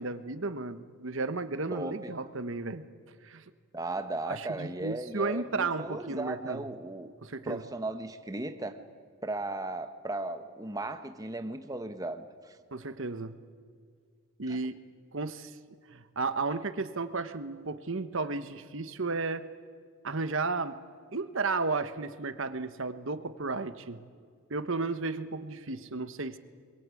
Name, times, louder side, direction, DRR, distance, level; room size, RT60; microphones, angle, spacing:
voice 1, 0.0-2.8 3.2-3.4 4.3-6.6 7.2-7.6 12.7-13.4 14.4-14.8 15.1-15.5 15.9-19.4 20.0-20.8 21.1-24.0 24.5-26.4, right 3 dB, 60° right, 11 dB, 1.1 m, -33 dB
voice 2, 1.7-2.2 3.7-7.1 7.4-8.8 9.2-12.6 14.5-14.6, right 2 dB, 15° right, 8 dB, 1.2 m, -36 dB
25.5 x 22.5 x 8.4 m, 2.1 s
head